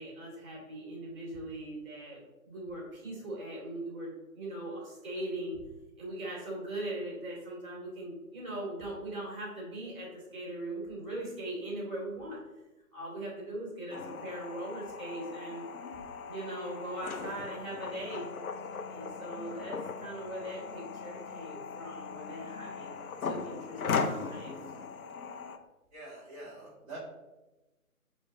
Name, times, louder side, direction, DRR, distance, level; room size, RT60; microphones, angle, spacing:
voice 1, 0.0-5.6 6.0-12.4 12.9-15.6 16.3-18.3 18.9-22.9 23.2-24.7, right 1 dB, ahead, -5 dB, 1.5 m, -40 dB
sound 1, 13.9-25.6, left 5 dB, 70° left, 0.6 m, -38 dB
voice 2, 25.9-27.0, right 2 dB, 25° right, -7 dB, 1.2 m, -46 dB
6.0 x 2.2 x 3.8 m, 1.0 s
figure-of-eight pair, 145°, 44 cm